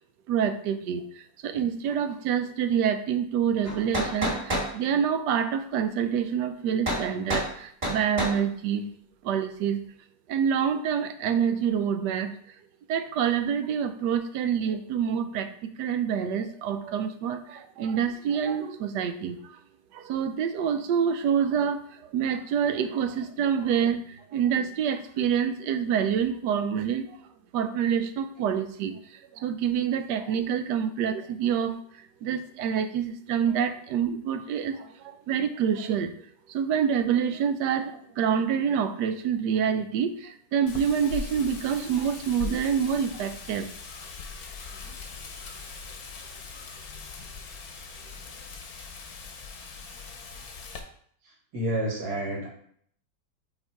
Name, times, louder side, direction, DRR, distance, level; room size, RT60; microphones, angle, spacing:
voice 1, 0.3-8.9 9.2-9.8 10.3-12.3 12.9-19.4 19.9-27.1 27.5-36.1 36.5-43.7 44.9-45.0, right 8 dB, 70° right, 8 dB, 1.1 m, -27 dB
sound 1, 3.6-4.7 6.9-7.1 7.3-7.5 7.8-8.4, equal, 30° right, 2.3 m, -28 dB
Wind, 40.7-50.8, left 5 dB, 60° left, 1.2 m, -40 dB
voice 2, 51.5-52.5, right 1 dB, 55° right, -2 dB, 2.2 m, -29 dB
5.2 x 4.4 x 4.5 m, 0.62 s
omnidirectional pair, 2.1 m